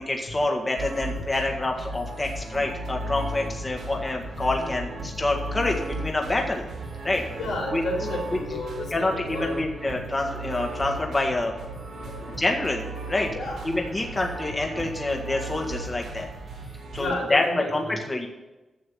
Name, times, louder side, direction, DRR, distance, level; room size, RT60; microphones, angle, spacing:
voice 1, 0.0-6.6 7.0-7.2 7.7-7.8 8.9-11.5 12.4-12.8 13.1-13.3 13.6-16.3 16.9-17.4 17.7-18.3, left 2 dB, 30° left, 1 dB, 1.9 m, -27 dB
sound 1, 0.8-17.1, right 1 dB, 85° right, 3.1 m, -36 dB
voice 2, 7.4-9.6 12.1-12.3 13.3-13.9 14.7-14.8 17.0-18.0, left 2 dB, 90° left, -3 dB, 4.1 m, -32 dB
11.0 x 6.8 x 7.1 m, 1.1 s
cardioid pair, 55°, 0 cm